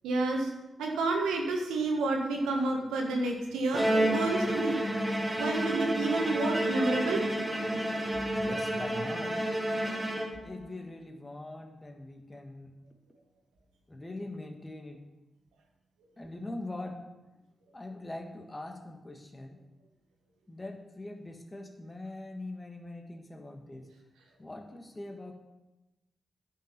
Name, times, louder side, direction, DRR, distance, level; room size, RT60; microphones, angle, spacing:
voice 1, 0.0-0.5 0.8-4.7 5.4-7.2, right 2 dB, 90° right, 1 dB, 1.5 m, -29 dB
Bowed string instrument, 3.7-10.7, right 1 dB, 25° right, 2.2 m, -30 dB
voice 2, 8.3-9.4 10.4-12.8 13.9-15.1 16.2-17.1 17.7-19.6 20.5-23.9 24.4-25.3, left 2 dB, 30° left, 4 dB, 1.8 m, -42 dB
10.5 x 6.1 x 5.9 m, 1.0 s
supercardioid pair, 40°, 0 cm